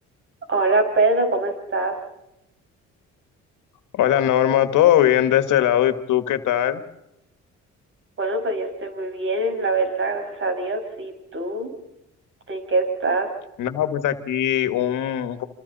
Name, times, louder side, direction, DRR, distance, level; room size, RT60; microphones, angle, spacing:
voice 1, 0.5-2.0 8.2-11.7 12.5-13.3, right 3 dB, 40° right, 5 dB, 6.1 m, -23 dB
voice 2, 3.9-6.8 13.6-15.4, left 11 dB, 85° left, 9 dB, 1.8 m, -20 dB
28.0 x 27.0 x 4.2 m, 0.87 s
cardioid pair, 90°, 30 cm